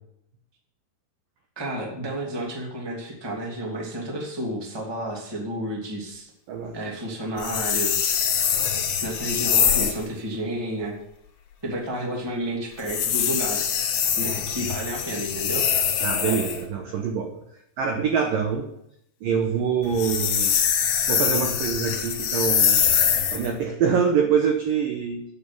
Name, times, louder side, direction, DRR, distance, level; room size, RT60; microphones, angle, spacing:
voice 1, 1.5-6.3 6.7-8.2 9.0-10.9 11.6-13.8 14.2-15.6, right 1 dB, 10° right, -1 dB, 1.2 m, -31 dB
sound 1, 7.4-10.0 12.8-16.6 19.8-23.5, left 8 dB, 60° left, 3.1 m, -23 dB
voice 2, 16.0-17.4 17.8-18.7 19.2-22.8 23.3-25.2, right 6 dB, 75° right, 3 dB, 2.0 m, -25 dB
9.4 x 7.3 x 8.9 m, 0.77 s
omnidirectional pair, 5.6 m